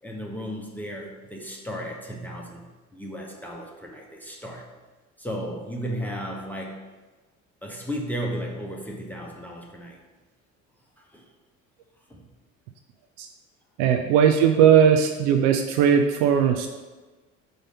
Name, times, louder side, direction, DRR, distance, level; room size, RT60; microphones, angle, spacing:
voice 1, 0.0-2.7 2.9-4.7 5.2-6.8 7.6-10.0 11.0-11.2 12.1-12.2 14.0-14.1, equal, 5° left, -1 dB, 0.9 m, -34 dB
voice 2, 13.8-16.7, right 8 dB, 60° right, 5 dB, 0.5 m, -18 dB
5.0 x 4.0 x 5.2 m, 1.3 s
figure-of-eight pair, 55°, 39 cm